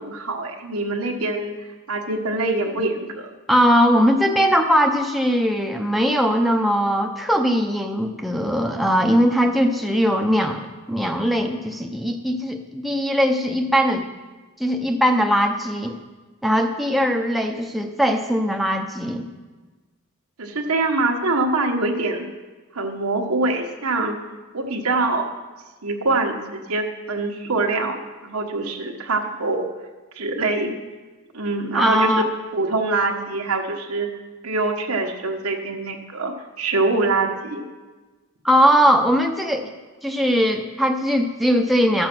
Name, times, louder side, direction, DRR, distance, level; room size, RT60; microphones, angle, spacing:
voice 1, 0.0-1.5 1.9-3.3 20.4-22.2 22.7-24.2 24.5-25.3 25.8-29.7 30.2-30.7 31.3-32.2 32.5-34.1 34.4-37.6, right 3 dB, 85° right, 3 dB, 1.3 m, -24 dB
voice 2, 3.5-14.0 14.6-16.0 16.4-19.3 31.7-32.2 38.4-39.7 40.0-42.1, equal, ahead, 2 dB, 0.6 m, -20 dB
13.0 x 6.8 x 6.0 m, 1.3 s
head